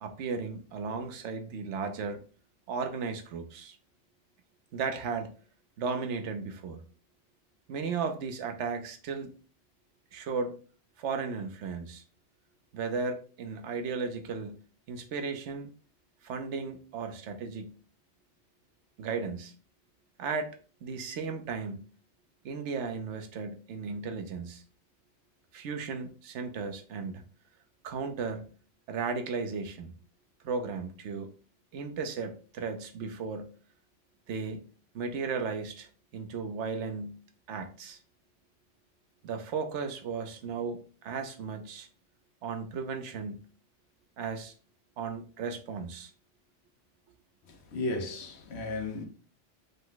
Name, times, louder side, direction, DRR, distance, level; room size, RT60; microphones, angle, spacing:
voice 1, 0.0-2.2 2.7-3.8 4.7-5.3 5.8-6.8 7.7-9.3 10.1-10.6 11.0-12.0 12.7-14.6 14.9-15.7 16.2-17.7 19.0-19.5 20.2-20.5 20.8-21.8 22.4-24.6 25.5-27.2 27.8-28.5 28.9-29.9 30.4-31.3 31.7-33.5 34.3-34.6 34.9-37.2 37.5-38.0 39.2-41.9 42.4-43.4 44.2-44.5 45.0-46.1, right 5 dB, 75° right, 1.0 m, -35 dB
voice 2, 47.5-49.0, left 2 dB, 65° left, 1.1 m, -34 dB
5.3 x 2.1 x 3.8 m
omnidirectional pair, 1.2 m